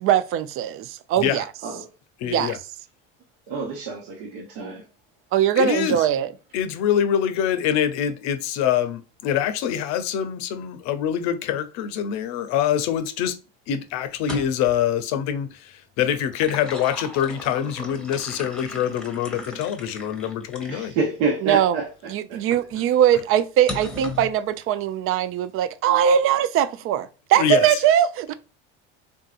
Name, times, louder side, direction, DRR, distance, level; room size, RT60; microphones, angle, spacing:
voice 1, 0.0-1.4 2.3-2.5 5.3-6.3 21.4-21.7 22.1-28.3, right 10 dB, 45° right, 0.5 m, -21 dB
voice 2, 2.2-2.6 5.6-6.0 6.5-13.3 13.7-20.9 27.4-27.8, left 9 dB, 65° left, 0.6 m, -25 dB
voice 3, 3.5-4.8 20.7-22.1, right 4 dB, 70° right, 1.1 m, -27 dB
sound 1, 14.1-14.8 16.1-20.9 21.6-21.7 23.7-24.3, left 2 dB, 5° left, 1.0 m, -37 dB
3.7 x 2.6 x 2.4 m
supercardioid pair, 95°, 29 cm